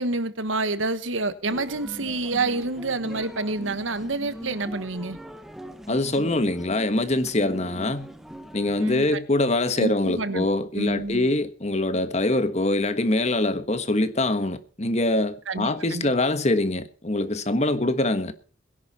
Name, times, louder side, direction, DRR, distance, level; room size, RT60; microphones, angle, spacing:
voice 1, 0.0-5.2 8.8-9.2 9.8-10.5 10.7-11.3 15.5-16.1, right 3 dB, 85° right, 1.4 m, -28 dB
sound 1, 1.5-9.1, equal, ahead, 1.3 m, -40 dB
voice 2, 5.9-8.1 8.5-18.3, left 2 dB, 35° left, 1.4 m, -24 dB
21.0 x 11.0 x 4.2 m
head